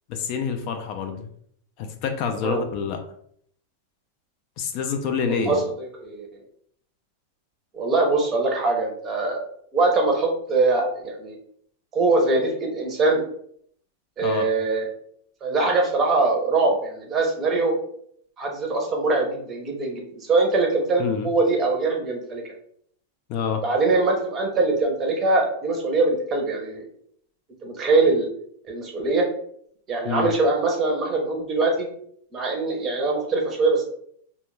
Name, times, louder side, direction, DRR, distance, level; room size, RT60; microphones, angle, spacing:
voice 1, 0.1-1.3 1.8-3.0 4.6-5.6 14.2-14.5 21.0-21.3 23.3-23.6 30.0-30.3, left 6 dB, 45° left, 5 dB, 0.4 m, -27 dB
voice 2, 5.3-6.3 7.7-9.4 9.7-11.4 11.9-13.2 14.2-14.9 15.4-17.7 18.4-22.4 23.6-26.9 27.6-28.3 28.7-29.3 29.9-31.9 32.3-33.8, right 3 dB, 25° right, 1 dB, 0.6 m, -22 dB
2.2 x 2.2 x 3.0 m, 0.64 s
supercardioid pair, 145°, 0 cm